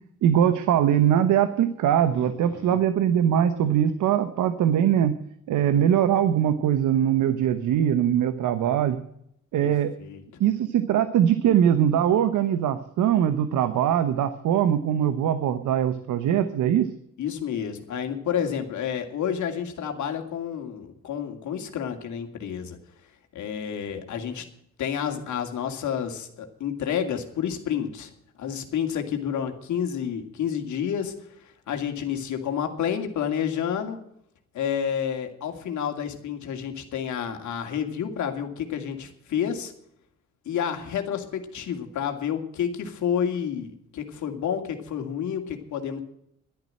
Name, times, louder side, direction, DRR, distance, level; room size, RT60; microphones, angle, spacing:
voice 1, 0.2-5.2 5.5-9.0 9.5-9.9 10.4-16.9, right 10 dB, 80° right, 11 dB, 1.1 m, -22 dB
voice 2, 2.1-2.8 9.6-9.7 10.0-10.2 17.2-22.8 23.3-24.4 24.8-28.1 28.4-31.1 31.4-34.0 34.5-39.7 40.5-46.0, left 8 dB, 70° left, 5 dB, 2.5 m, -30 dB
12.0 x 11.0 x 7.7 m, 0.74 s
cardioid pair, 90°, 30 cm